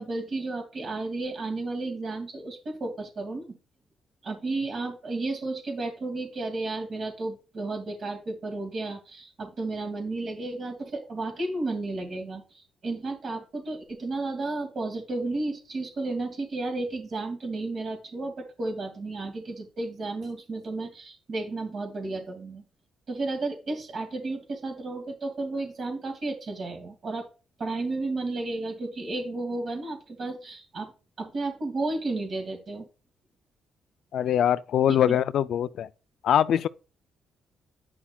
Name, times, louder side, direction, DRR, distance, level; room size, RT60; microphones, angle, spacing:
voice 1, 0.0-3.6 4.2-22.6 23.1-27.3 27.6-30.9 31.2-32.9 35.1-35.2, right 2 dB, 50° right, 2.5 m, -33 dB
voice 2, 34.1-35.9 36.2-36.7, left 10 dB, 70° left, 0.4 m, -23 dB
9.6 x 5.7 x 2.3 m
cardioid pair, 90°, 0 cm